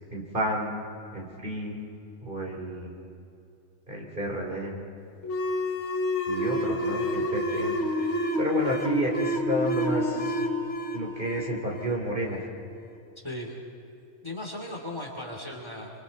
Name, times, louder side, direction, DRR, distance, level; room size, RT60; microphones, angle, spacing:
voice 1, 0.1-0.8 1.1-1.8 2.2-2.9 3.9-4.8 6.3-8.1 8.4-10.4 10.9-12.5, right 1 dB, 40° right, -1 dB, 3.8 m, -31 dB
sound 1, 5.2-12.5, left 1 dB, 60° left, 1.7 m, -29 dB
voice 2, 13.2-13.6 14.2-15.9, left 1 dB, 20° left, 0 dB, 3.0 m, -37 dB
27.0 x 25.0 x 4.3 m, 2.7 s
omnidirectional pair, 1.3 m